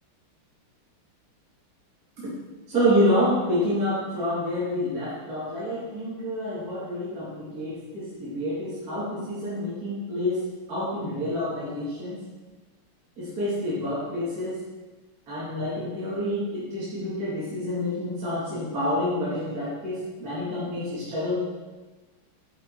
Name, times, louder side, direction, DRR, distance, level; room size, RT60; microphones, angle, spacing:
voice 1, 2.7-12.2 13.2-14.6 15.3-21.4, equal, 45° right, -10 dB, 2.5 m, -28 dB
9.1 x 5.6 x 4.5 m, 1.3 s
omnidirectional pair, 2.4 m